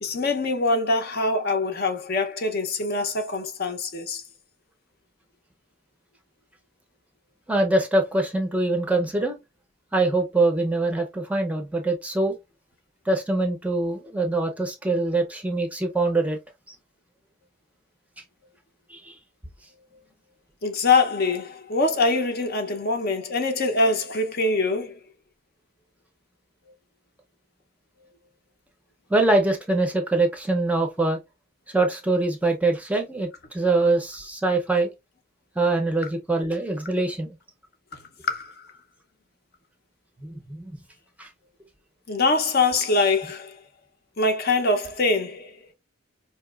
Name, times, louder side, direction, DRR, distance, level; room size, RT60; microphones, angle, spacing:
voice 1, 0.0-4.2 20.6-25.0 37.9-38.0 38.3-38.7 42.1-43.6 44.2-45.6, left 3 dB, 50° left, 0.6 m, -24 dB
voice 2, 7.5-9.4 9.9-12.4 13.1-16.4 16.7-16.8 18.9-19.2 29.1-31.2 31.7-34.9 35.6-37.4 40.2-40.7 41.2-41.3, right 2 dB, 5° right, 0.5 m, -23 dB
4.5 x 2.8 x 2.3 m
head